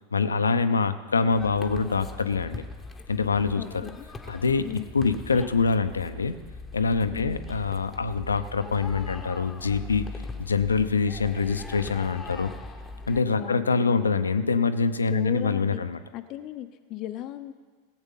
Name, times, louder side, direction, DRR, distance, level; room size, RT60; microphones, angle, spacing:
voice 1, 0.1-2.6 3.1-3.9 4.3-4.6 4.9-6.3 6.7-10.0 10.4-12.5 13.1-16.0, left 4 dB, 80° left, 11 dB, 0.6 m, -25 dB
sound 1, 1.3-13.2, left 3 dB, 15° left, 1.0 m, -41 dB
voice 2, 3.6-4.0 4.6-4.9 7.1-7.5 13.3-13.9 15.1-15.8 16.1-17.5, left 13 dB, 40° left, 8 dB, 0.6 m, -36 dB
16.5 x 8.0 x 5.6 m, 1.5 s
figure-of-eight pair, 90°, 0 cm